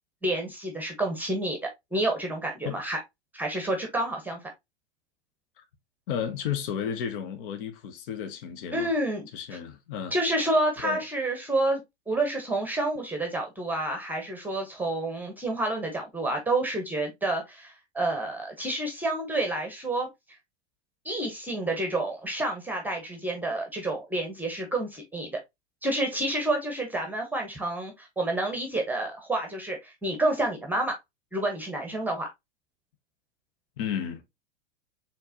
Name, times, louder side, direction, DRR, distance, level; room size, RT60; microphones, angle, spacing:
voice 1, 0.2-1.6 1.9-3.0 3.3-4.4 8.7-9.3 10.1-11.8 12.1-20.1 21.0-25.4 25.8-31.0 31.3-32.3, right 2 dB, 5° right, 1.1 m, -29 dB
voice 2, 6.1-8.9 9.3-10.1 10.8-11.0 33.8-34.2, left 8 dB, 55° left, 0.9 m, -33 dB
4.4 x 3.6 x 2.7 m
figure-of-eight pair, 95°, 33 cm